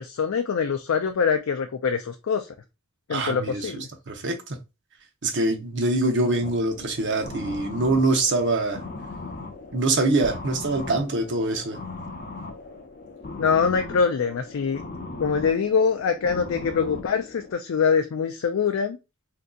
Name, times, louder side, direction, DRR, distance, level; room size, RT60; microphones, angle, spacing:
voice 1, 0.0-2.5 3.1-3.9 13.4-14.8 15.2-19.0, left 6 dB, 65° left, 0.4 m, -24 dB
voice 2, 3.1-4.6 5.2-8.8 9.7-11.8, right 2 dB, 55° right, 0.8 m, -24 dB
sound 1, 6.4-17.5, left 3 dB, 45° left, 0.7 m, -38 dB
3.7 x 2.7 x 2.3 m
head